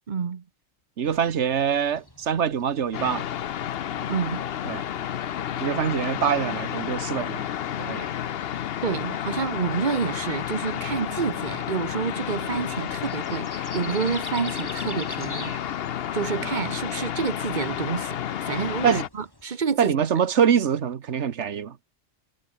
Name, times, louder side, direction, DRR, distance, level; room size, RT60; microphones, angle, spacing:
voice 1, 0.1-0.4 4.1-4.4 8.8-15.6 16.1-20.0, right 6 dB, 45° right, 0.9 m, -29 dB
sound 1, 1.0-19.4, left 1 dB, 20° left, 3.7 m, -47 dB
voice 2, 1.0-3.3 4.6-4.8 5.6-7.5 7.8-8.1 18.8-19.0 19.8-21.8, right 8 dB, 70° right, 1.4 m, -24 dB
sound 2, 2.9-19.1, left 10 dB, 60° left, 0.9 m, -31 dB
omnidirectional pair, 1.3 m